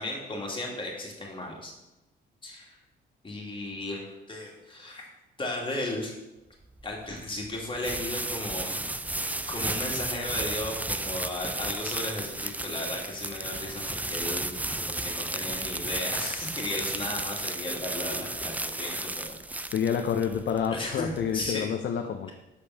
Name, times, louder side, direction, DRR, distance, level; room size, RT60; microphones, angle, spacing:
voice 1, 0.0-1.7 2.4-2.8 3.2-5.0 5.4-6.2 6.8-8.8 9.5-14.5 14.8-19.3 20.7-21.8, left 1 dB, 25° left, -1 dB, 2.6 m, -35 dB
sound 1, 6.6-21.5, right 2 dB, 10° right, 0.4 m, -34 dB
voice 2, 19.7-22.3, left 8 dB, 60° left, 5 dB, 0.7 m, -28 dB
6.8 x 5.2 x 7.1 m, 0.98 s
cardioid pair, 90°, 20 cm